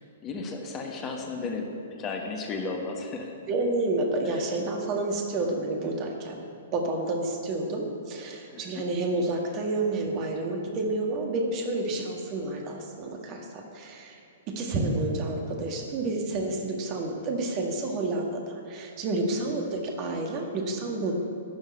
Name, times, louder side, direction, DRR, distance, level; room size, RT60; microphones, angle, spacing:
voice 1, 0.2-1.7 2.0-3.3 8.5-8.8 12.0-12.1 19.5-19.6, left 4 dB, 25° left, 2 dB, 1.4 m, -34 dB
voice 2, 3.5-6.4 6.7-14.2 14.5-21.3, right 2 dB, 35° right, 2 dB, 1.7 m, -29 dB
12.0 x 6.4 x 8.7 m, 2.5 s
figure-of-eight pair, 110°, 0 cm